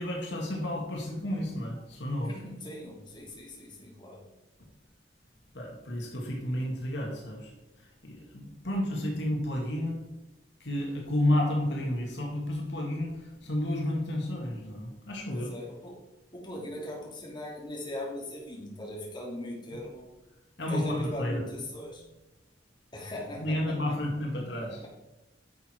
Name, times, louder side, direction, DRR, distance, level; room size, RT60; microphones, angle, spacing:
voice 1, 0.0-2.3 5.5-7.5 8.0-10.0 10.6-15.5 20.6-21.4 23.4-24.8, left 1 dB, 70° left, -1 dB, 2.2 m, -31 dB
voice 2, 2.2-4.2 15.3-16.0 16.3-20.0 20.7-22.0 22.9-23.7, left 1 dB, 25° left, -3 dB, 2.8 m, -39 dB
11.0 x 6.6 x 4.6 m, 1.0 s
head